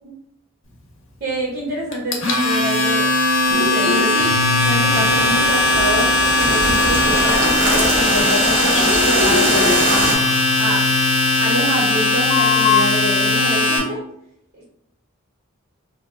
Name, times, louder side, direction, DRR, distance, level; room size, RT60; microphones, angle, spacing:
voice 1, 1.2-3.1 3.5-4.3 4.6-6.1 6.4-10.1 10.6-10.8 11.4-14.0 14.6-14.7, right 1 dB, 50° right, -3 dB, 0.6 m, -26 dB
Domestic sounds home sounds, 1.9-13.8, left 2 dB, 65° left, 0.7 m, -18 dB
sound 1, 3.5-5.3 5.6-6.5 7.0-7.1 7.7-7.9 8.6-11.2 12.3-12.8, left 6 dB, 30° left, 0.4 m, -24 dB
sound 2, 4.9-10.1, right 1 dB, 85° right, 1.2 m, -22 dB
2.8 x 2.2 x 3.4 m, 0.77 s
head